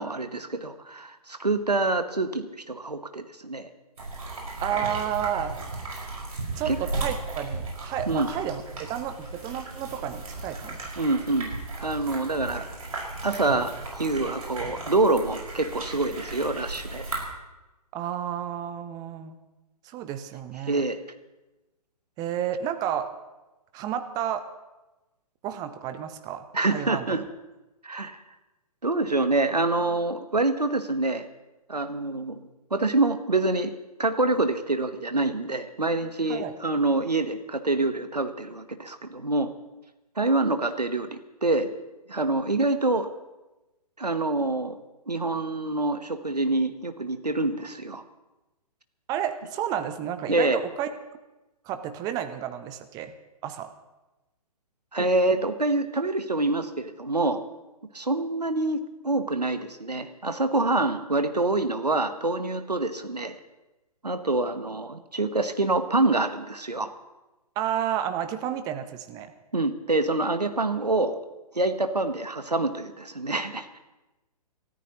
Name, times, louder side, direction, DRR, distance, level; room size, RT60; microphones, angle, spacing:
voice 1, 0.0-3.7 6.7-6.8 8.1-8.3 11.0-11.5 11.8-12.8 13.2-13.7 14.0-17.0 20.7-21.0 26.5-27.2 27.8-28.2 28.8-31.2 31.7-32.4 32.7-33.7 34.0-39.5 40.2-41.7 42.1-43.1 44.0-44.7 45.1-48.0 50.3-50.6 54.9-57.4 57.9-63.4 64.0-66.9 69.5-71.2 71.5-73.8, right 2 dB, 80° right, 9 dB, 1.2 m, -26 dB
sound 1, 4.0-17.3, right 2 dB, 65° right, 5.3 m, -35 dB
voice 2, 4.6-5.5 6.6-11.1 17.9-19.4 19.8-20.8 22.2-23.1 23.7-24.5 25.4-26.5 26.7-27.1 36.3-36.5 49.1-50.9 51.7-53.1 53.4-53.7 67.6-69.3, right 10 dB, 20° right, 9 dB, 0.8 m, -31 dB
28.0 x 13.5 x 3.0 m, 1.1 s
figure-of-eight pair, 125°, 20 cm